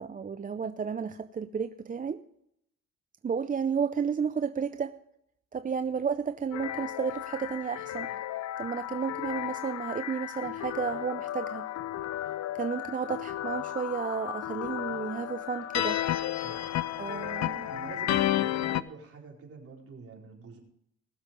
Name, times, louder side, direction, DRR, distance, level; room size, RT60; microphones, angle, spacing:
voice 1, 0.0-2.2 3.2-5.0 5.5-8.1 8.6-11.6 12.5-16.0 17.0-17.7, right 6 dB, 30° right, 11 dB, 0.5 m, -32 dB
sound 1, 6.5-18.8, left 13 dB, 60° left, 0.6 m, -33 dB
voice 2, 17.7-20.6, right 5 dB, 50° right, -1 dB, 4.4 m, -46 dB
19.5 x 7.1 x 5.2 m, 0.75 s
cardioid pair, 90°, 30 cm